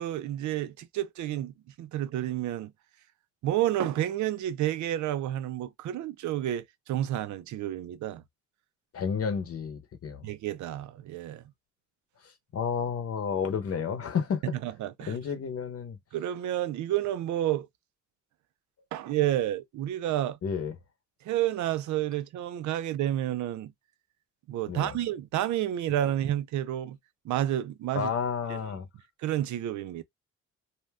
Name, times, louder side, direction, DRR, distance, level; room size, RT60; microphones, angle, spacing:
voice 1, 0.0-2.7 3.4-8.2 10.2-11.4 14.6-15.2 16.1-17.7 18.9-20.4 21.2-23.7 24.5-27.0 27.2-28.1 28.5-28.6 29.2-30.0, right 12 dB, 70° right, 0.5 m, -30 dB
voice 2, 8.9-10.3 12.5-14.4 15.0-16.0 20.4-20.7 24.7-25.0 27.9-28.9, left 6 dB, 50° left, 0.8 m, -31 dB
2.7 x 2.2 x 3.4 m
cardioid pair, 90°, 30 cm